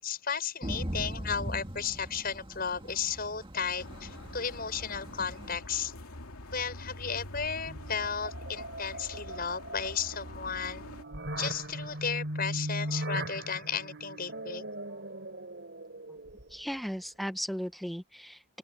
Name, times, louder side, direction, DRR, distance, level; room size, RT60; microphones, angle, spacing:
voice 1, 0.0-5.9 6.5-10.8 11.4-14.6, left 6 dB, 40° left, 7.2 m, -34 dB
Thunder / Rain, 0.6-5.6, equal, 25° right, 1.9 m, -40 dB
sound 1, 3.8-11.0, left 1 dB, 85° left, 2.6 m, -45 dB
sound 2, 7.7-16.7, right 1 dB, 55° right, 4.1 m, -39 dB
voice 2, 16.5-18.6, equal, ahead, 1.5 m, -36 dB
open air
head